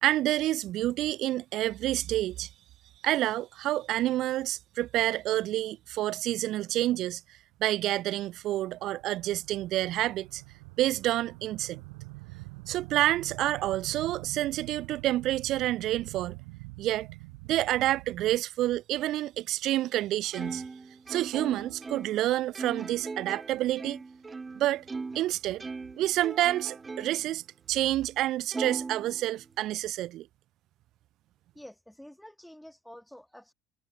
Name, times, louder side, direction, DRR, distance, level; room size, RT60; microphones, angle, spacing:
voice 1, 0.0-2.5 3.0-7.2 7.6-10.4 10.8-11.8 12.7-16.4 16.8-17.1 17.5-20.6 21.1-24.0 24.5-24.8 25.1-25.6 26.0-27.4 27.7-30.3, right 14 dB, 60° right, 1.4 m, -28 dB
sound 1, 7.5-18.4, right 29 dB, 80° right, 4.1 m, -46 dB
Plucked string instrument, 20.3-25.3 25.6-27.3 27.7-27.8 28.5-29.7, right 4 dB, 20° right, 1.5 m, -39 dB
voice 2, 31.5-33.5, equal, 5° left, 7.1 m, -49 dB
hypercardioid pair, 75°, 0 cm